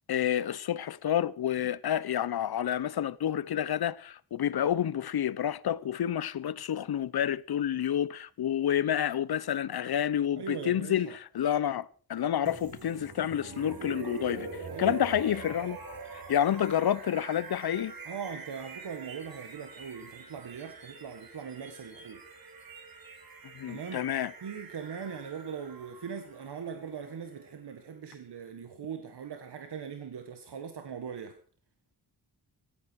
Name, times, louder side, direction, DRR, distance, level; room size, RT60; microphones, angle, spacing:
voice 1, 0.1-15.8 16.1-17.9 23.5-24.3, left 10 dB, 70° left, 0.7 m, -29 dB
voice 2, 10.4-11.2 14.7-15.0 18.0-22.2 23.7-24.1 24.4-31.4, right 7 dB, 90° right, 1.8 m, -40 dB
sound 1, 12.5-28.3, right 4 dB, 60° right, 3.4 m, -45 dB
17.0 x 14.5 x 4.7 m
wide cardioid pair, 160°, 39 cm